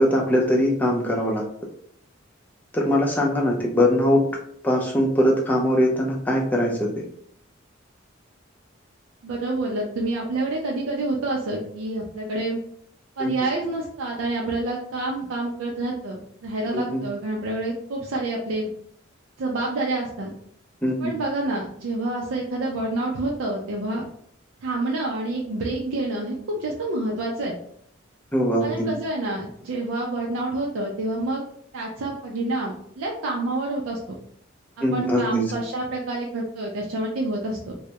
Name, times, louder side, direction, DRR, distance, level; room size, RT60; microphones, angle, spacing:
voice 1, 0.0-1.4 2.7-4.2 4.6-6.9 13.2-13.3 16.7-17.0 20.8-21.1 28.3-28.9 34.8-35.5, equal, 10° left, -1 dB, 0.4 m, -21 dB
voice 2, 9.2-12.6 13.2-18.7 19.4-20.3 21.0-24.0 24.6-27.5 28.6-31.4 31.7-34.2 34.8-37.6, right 2 dB, 80° right, -1 dB, 0.4 m, -28 dB
2.2 x 2.0 x 2.7 m, 0.65 s
head